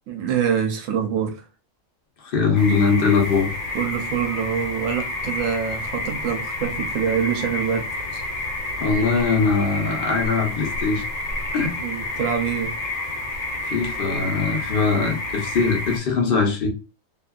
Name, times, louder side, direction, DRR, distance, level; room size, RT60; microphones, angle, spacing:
voice 1, 0.1-1.4 3.7-7.9 8.1-8.2 11.8-12.7, right 8 dB, 75° right, 1.0 m, -25 dB
voice 2, 2.2-3.5 8.8-11.0 11.5-11.7 13.7-16.7, left 5 dB, 50° left, 0.9 m, -21 dB
sound 1, 2.5-16.0, left 2 dB, 80° left, 1.1 m, -29 dB
2.7 x 2.6 x 2.3 m
omnidirectional pair, 1.4 m